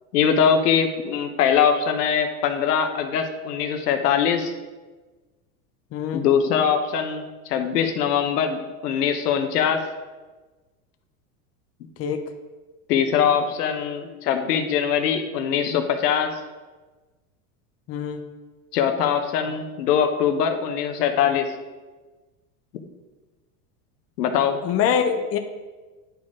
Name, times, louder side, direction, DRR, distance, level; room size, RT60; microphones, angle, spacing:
voice 1, 0.1-4.5 6.1-9.8 12.9-16.3 18.7-21.5 24.2-24.6, left 7 dB, 80° left, 6 dB, 1.1 m, -22 dB
voice 2, 5.9-6.2 12.0-12.3 17.9-18.2 24.6-25.4, left 7 dB, 30° left, 6 dB, 0.7 m, -24 dB
9.6 x 4.3 x 4.8 m, 1.3 s
supercardioid pair, 110°, 46 cm